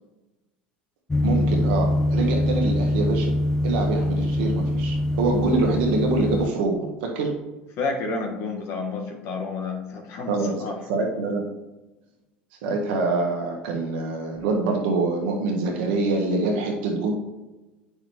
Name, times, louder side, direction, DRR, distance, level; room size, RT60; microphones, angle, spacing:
sound 1, 1.1-6.5, left 1 dB, 15° left, 0.4 m, -23 dB
voice 1, 1.2-3.3 3.6-7.3 10.3-10.5 10.9-11.5 12.6-17.1, right 3 dB, 65° right, 1 dB, 1.5 m, -25 dB
voice 2, 7.8-10.8, left 3 dB, 50° left, 2 dB, 1.4 m, -30 dB
8.6 x 5.9 x 3.0 m, 1.1 s
hypercardioid pair, 80°, 6 cm